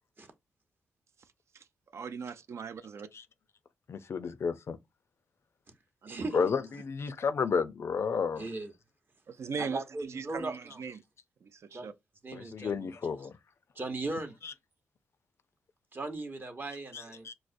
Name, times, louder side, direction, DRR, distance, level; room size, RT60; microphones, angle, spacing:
voice 1, 1.9-3.1 6.0-6.3 9.3-9.8 10.1-11.0 11.4-11.9, right 5 dB, 65° right, 0.4 m, -39 dB
voice 2, 3.9-4.8 6.3-8.5 12.3-13.4 14.4-14.5 16.9-17.3, left 5 dB, 60° left, 0.4 m, -32 dB
voice 3, 8.4-8.7 9.6-10.8 11.7-11.9 12.2-12.9 13.8-14.3 15.9-17.3, right 2 dB, 40° right, 0.8 m, -38 dB
4.6 x 2.0 x 2.5 m
supercardioid pair, 50°, 5 cm